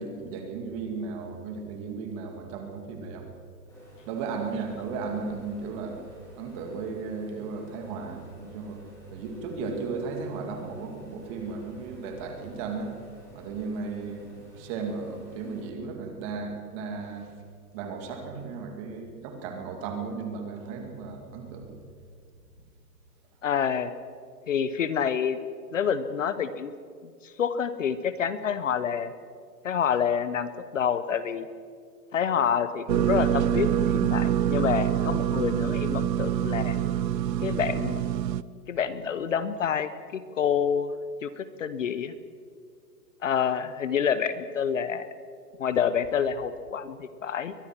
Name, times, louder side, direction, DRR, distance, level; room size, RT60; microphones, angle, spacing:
voice 1, 0.0-3.3 4.1-6.0 6.4-8.8 9.1-13.0 13.3-17.3 17.7-21.7, right 4 dB, 20° right, 4 dB, 2.3 m, -35 dB
sound 1, 3.7-15.7, equal, 5° left, 5.8 m, -50 dB
voice 2, 23.4-23.9 24.5-25.4 25.7-26.7 27.2-29.1 29.6-31.5 32.1-36.8 37.4-38.0 38.7-40.9 41.2-42.1 43.2-45.1 45.6-47.5, left 7 dB, 50° left, 13 dB, 1.1 m, -27 dB
sound 2, 32.9-38.4, right 10 dB, 80° right, 0.9 m, -25 dB
22.5 x 20.5 x 6.1 m, 2.1 s
hypercardioid pair, 170°, 49 cm